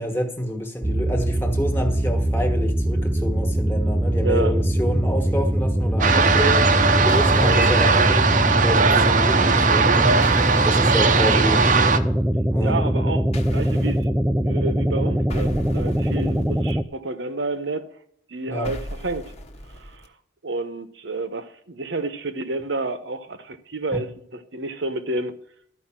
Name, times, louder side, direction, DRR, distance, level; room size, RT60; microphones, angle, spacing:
voice 1, 0.0-6.6 6.9-10.2 10.6-11.7 12.5-12.9 18.5-18.7 23.9-24.0, equal, 10° left, 1.4 m, -28 dB
sound 1, 0.8-16.8, right 1 dB, 5° right, 0.4 m, -22 dB
voice 2, 4.2-4.6 12.6-13.2 13.5-17.9 18.3-19.3 19.7-20.1 20.4-25.4, right 2 dB, 65° right, 1.0 m, -30 dB
sound 2, 6.0-12.0, right 4 dB, 40° right, 0.7 m, -19 dB
sound 3, 7.1-7.8 10.2-10.9 13.3-14.0 15.3-16.7 18.6-20.1, equal, 35° left, 1.2 m, -37 dB
13.5 x 5.2 x 8.9 m
head